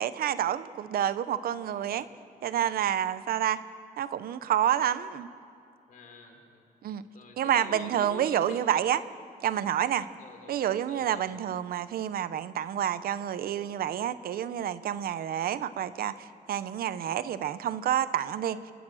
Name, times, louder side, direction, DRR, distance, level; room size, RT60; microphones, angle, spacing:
voice 1, 0.0-2.1 2.4-3.6 4.0-5.3 6.8-7.0 7.4-9.0 9.4-10.1 10.5-18.6, right 10 dB, 85° right, 14 dB, 0.8 m, -29 dB
voice 2, 1.6-2.1 5.9-8.6 10.2-10.6 10.9-11.4, left 4 dB, 65° left, 4 dB, 3.5 m, -48 dB
26.5 x 19.5 x 6.3 m, 2.5 s
wide cardioid pair, 140°, 15 cm